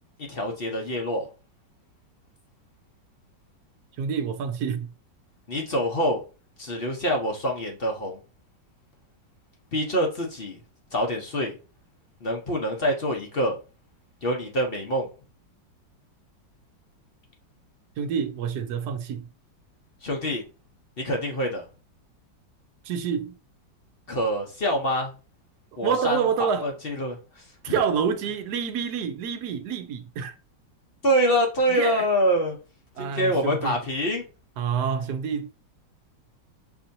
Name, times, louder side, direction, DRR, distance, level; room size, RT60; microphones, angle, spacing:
voice 1, 0.3-1.3 5.5-6.2 6.6-8.2 9.7-10.6 10.9-11.5 12.2-13.6 14.2-15.1 20.0-20.4 21.0-21.6 24.1-25.1 25.8-26.2 26.6-27.7 31.0-32.6 33.0-34.2, equal, 45° left, 0.8 m, -25 dB
voice 2, 4.0-4.9 18.0-19.3 22.8-23.3 25.8-26.7 27.6-30.3 31.7-32.1 33.0-33.7 34.6-35.5, right 7 dB, 70° right, 1.1 m, -27 dB
6.9 x 2.8 x 2.7 m
omnidirectional pair, 2.0 m